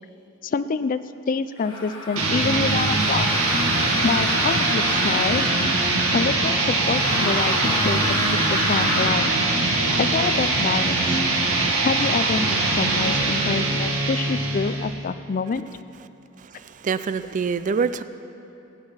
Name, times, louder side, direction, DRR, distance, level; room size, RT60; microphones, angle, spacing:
voice 1, 0.4-1.0 1.3-3.3 4.0-5.5 6.1-9.3 9.7-11.2 11.8-15.7, left 5 dB, 40° left, 11 dB, 0.4 m, -27 dB
sound 1, 1.6-6.2 6.8-9.2, left 1 dB, 25° left, 3.0 m, -30 dB
sound 2, 2.2-15.0, right 2 dB, 90° right, 2.0 m, -22 dB
voice 2, 16.4-18.0, right 5 dB, 40° right, 13 dB, 0.4 m, -26 dB
19.0 x 9.7 x 5.7 m, 2.8 s
head